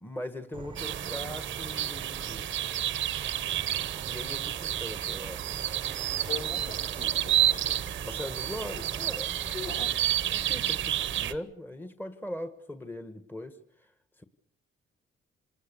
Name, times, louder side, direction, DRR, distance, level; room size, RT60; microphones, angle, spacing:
voice 1, 0.0-2.5 4.1-5.5 8.0-10.0 10.3-13.9 14.2-14.3, left 1 dB, 10° left, 9 dB, 1.4 m, -40 dB
Insect / Frog, 0.5-11.4, right 5 dB, 25° right, 0.9 m, -42 dB
sound 1, 0.8-11.3, right 12 dB, 75° right, 0.9 m, -30 dB
voice 2, 6.3-7.8 9.6-9.9, left 7 dB, 60° left, 3 dB, 3.9 m, -42 dB
27.5 x 19.0 x 6.9 m, 0.69 s
cardioid pair, 90°, 20 cm